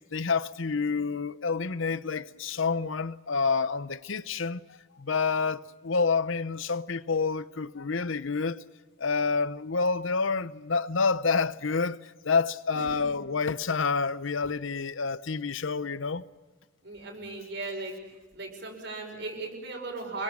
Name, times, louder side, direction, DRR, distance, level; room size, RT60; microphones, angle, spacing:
voice 1, 0.1-8.6 9.0-16.2, left 4 dB, 65° left, 0.8 m, -28 dB
voice 2, 12.7-13.1 16.8-18.0 18.3-20.2, right 3 dB, 55° right, 5.5 m, -37 dB
28.5 x 23.5 x 7.3 m
head